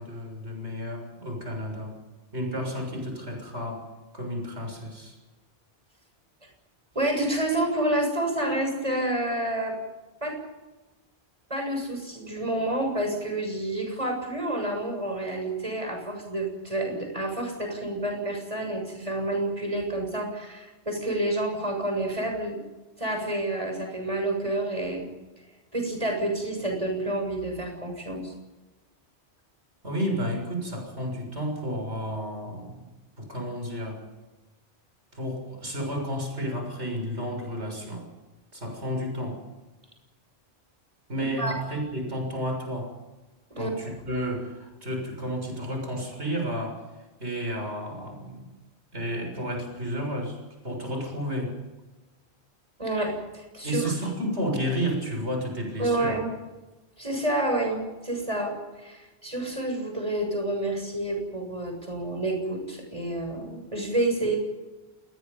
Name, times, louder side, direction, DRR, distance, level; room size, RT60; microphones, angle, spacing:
voice 1, 0.0-2.0 2.3-3.8 4.1-5.2 29.8-32.9 33.2-34.0 35.1-38.1 38.5-39.4 41.1-43.0 43.6-46.8 47.2-48.5 48.9-50.4 50.6-51.6 53.6-56.2, equal, 80° right, 3 dB, 7.0 m, -31 dB
voice 2, 6.9-9.8 10.2-10.4 11.5-22.6 23.0-25.1 25.7-28.3 41.4-41.5 43.5-43.7 52.8-53.9 55.8-56.3 57.0-64.4, right 1 dB, 30° right, 3 dB, 7.4 m, -29 dB
29.0 x 20.5 x 5.6 m, 1.1 s
omnidirectional pair, 1.1 m